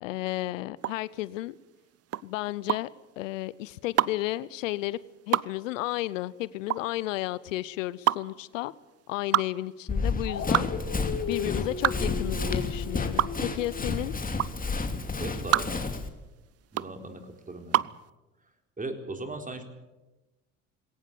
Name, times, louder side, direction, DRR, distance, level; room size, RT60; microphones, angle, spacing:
voice 1, 0.0-1.5 2.2-2.9 3.2-5.0 5.3-8.7 9.1-10.7 11.3-14.1, left 17 dB, 80° left, 0.8 m, -33 dB
sound 1, 0.8-18.0, right 13 dB, 40° right, 0.6 m, -29 dB
Run, 9.9-16.1, left 4 dB, 20° left, 2.8 m, -31 dB
Dog, 10.2-14.0, left 4 dB, 40° left, 6.6 m, -37 dB
voice 2, 15.2-16.1 16.7-17.2 17.5-17.8 18.8-19.6, right 2 dB, 20° right, 4.2 m, -37 dB
21.0 x 18.0 x 8.6 m
hypercardioid pair, 65°, 37 cm